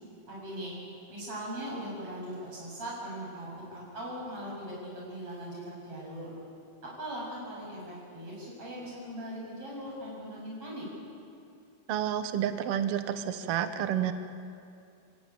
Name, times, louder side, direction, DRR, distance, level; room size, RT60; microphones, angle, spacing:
voice 1, 0.3-0.8 1.1-6.3 7.0-10.9, equal, 40° right, -4 dB, 9.0 m, -40 dB
voice 2, 11.9-14.1, right 10 dB, 80° right, 9 dB, 1.3 m, -30 dB
28.5 x 16.5 x 9.1 m, 2.4 s
omnidirectional pair, 4.1 m